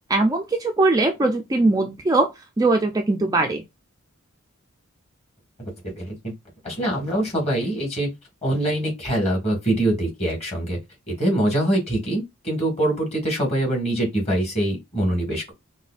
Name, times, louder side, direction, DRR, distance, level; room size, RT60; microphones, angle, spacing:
voice 1, 0.1-2.3 2.6-3.6, right 2 dB, 15° right, 0.3 m, -20 dB
voice 2, 5.6-6.3 6.6-8.1 8.4-10.8 11.1-15.5, right 1 dB, 30° left, 1.8 m, -24 dB
5.1 x 2.2 x 2.4 m
head